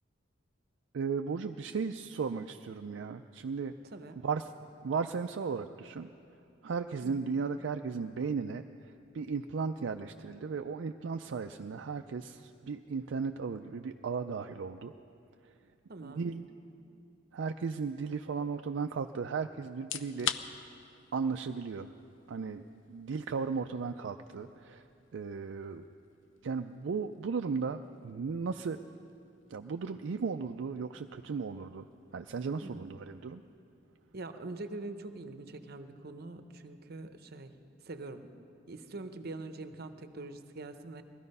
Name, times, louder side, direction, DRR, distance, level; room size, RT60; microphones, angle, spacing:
voice 1, 0.9-3.7 4.2-4.5 4.8-6.1 6.6-14.9 16.0-16.5 17.3-20.7 21.1-21.9 22.3-22.6 22.9-24.8 25.1-25.8 26.4-28.8 29.5-31.9 32.1-33.4, right 5 dB, 75° right, 6 dB, 0.4 m, -36 dB
voice 2, 15.9-16.4 32.6-32.9 34.1-37.5 37.8-38.3 38.7-41.0, right 2 dB, 55° right, 9 dB, 0.8 m, -44 dB
sound 1, 19.7-34.6, left 9 dB, 85° left, 0.6 m, -47 dB
19.0 x 13.5 x 5.4 m, 2.6 s
head